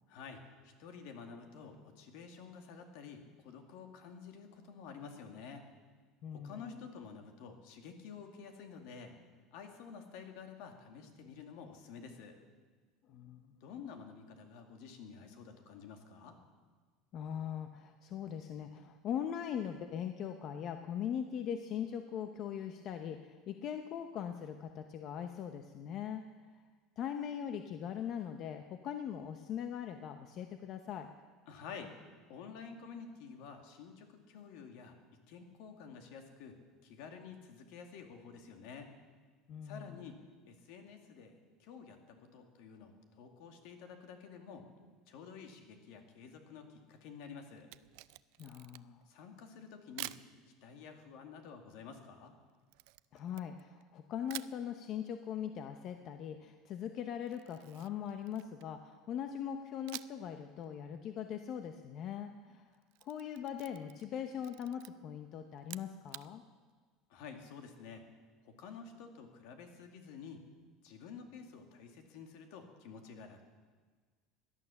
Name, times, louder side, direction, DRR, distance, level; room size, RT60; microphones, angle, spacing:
voice 1, 0.1-5.7 6.3-9.1 9.5-12.4 13.6-16.4 31.5-34.9 35.3-38.9 39.6-40.2 40.5-44.6 45.1-47.7 49.1-50.2 50.6-52.3 67.1-68.0 68.4-70.4 70.8-73.4, left 6 dB, 65° left, 5 dB, 2.3 m, -50 dB
voice 2, 6.2-6.8 13.1-13.6 17.1-26.2 27.0-31.1 39.5-40.0 48.4-49.0 53.1-62.7 63.0-66.4, left 9 dB, 40° left, 7 dB, 0.8 m, -41 dB
Camera, 47.6-49.0 50.0-50.3 52.7-53.9 54.3-54.6 57.3-58.8 59.9-60.3 60.6-60.7 62.7-64.1 64.4-64.9 65.6-66.3, right 21 dB, 70° right, 0.4 m, -48 dB
17.5 x 11.0 x 7.1 m, 1.5 s
cardioid pair, 150°, 0 cm